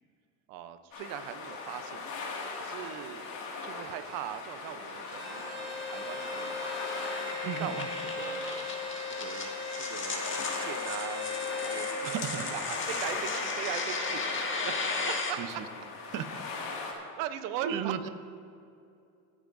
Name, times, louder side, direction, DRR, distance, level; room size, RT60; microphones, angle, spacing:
voice 1, 0.5-2.1 2.6-3.2 3.6-6.8 7.4-7.9 8.1-8.7 9.1-11.3 11.6-12.1 12.5-15.4 16.9-18.1, right 11 dB, 90° right, 10 dB, 0.8 m, -40 dB
sound 1, 0.9-16.9, left 4 dB, 55° left, 2.2 m, -40 dB
sound 2, 4.6-15.3, left 3 dB, 30° left, 1.7 m, -36 dB
Bowed string instrument, 5.0-12.0, left 3 dB, 30° right, 2.5 m, -38 dB
voice 2, 7.4-7.9 12.0-12.5 15.4-15.7 16.1-16.4 17.6-18.1, right 8 dB, 55° right, 10 dB, 0.9 m, -35 dB
24.5 x 8.5 x 2.7 m, 2.5 s
supercardioid pair, 105°, 39 cm